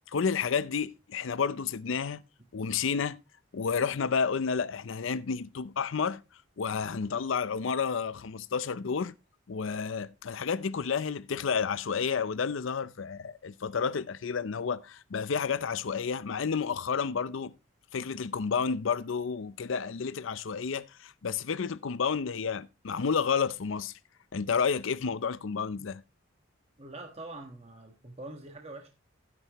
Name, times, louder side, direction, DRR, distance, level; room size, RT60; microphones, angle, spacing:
voice 1, 0.1-2.2 2.5-3.2 3.5-6.2 6.6-9.1 9.5-17.5 17.9-23.9 24.3-26.0, left 6 dB, 70° left, 0.5 m, -30 dB
voice 2, 26.8-28.9, right 2 dB, 30° right, 1.4 m, -44 dB
12.5 x 10.0 x 3.0 m
head